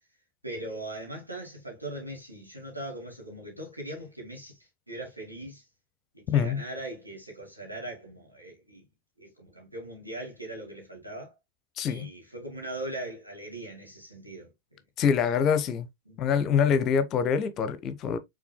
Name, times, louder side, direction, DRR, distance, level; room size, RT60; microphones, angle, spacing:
voice 1, 0.4-4.6 4.9-5.6 6.1-8.8 9.2-11.3 11.8-14.5 15.2-15.7 16.1-16.3, right 1 dB, 85° right, 2.3 m, -40 dB
voice 2, 6.3-6.6 11.8-12.1 15.0-15.9 16.2-18.2, left 7 dB, 35° left, 0.7 m, -25 dB
5.9 x 3.8 x 2.2 m
figure-of-eight pair, 90°, 0 cm